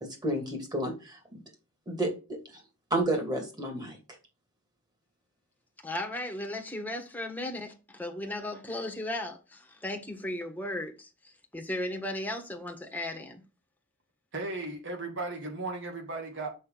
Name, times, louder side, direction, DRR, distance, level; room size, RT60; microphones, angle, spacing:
voice 1, 0.0-1.4 1.9-2.4 2.9-4.0, right 1 dB, 20° right, 2.5 m, -31 dB
voice 2, 5.8-13.4, left 1 dB, 10° left, 1.4 m, -36 dB
voice 3, 14.3-16.5, right 2 dB, 65° right, 2.3 m, -36 dB
6.5 x 5.6 x 4.0 m
head